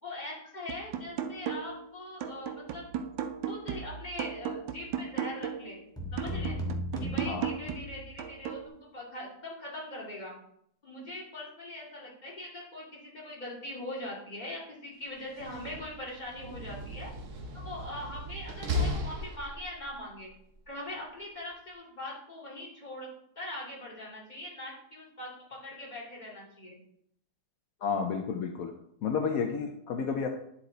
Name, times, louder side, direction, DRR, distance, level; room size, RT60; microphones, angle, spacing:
voice 1, 0.0-2.9 3.5-5.8 6.1-6.6 7.0-10.4 10.8-17.1 17.6-20.3 20.7-23.1 23.4-26.8, left 1 dB, 20° left, -4 dB, 2.3 m, -41 dB
sound 1, 0.7-1.9 2.2-5.7 6.2-8.7, right 8 dB, 75° right, 1.3 m, -36 dB
sound 2, 6.0-8.2, left 1 dB, 5° left, 1.0 m, -36 dB
Slam, 15.2-19.9, left 1 dB, 50° right, 1.1 m, -36 dB
voice 2, 27.8-28.7 29.0-30.3, left 6 dB, 70° left, 4 dB, 0.8 m, -31 dB
10.0 x 4.5 x 3.9 m, 0.72 s
omnidirectional pair, 2.2 m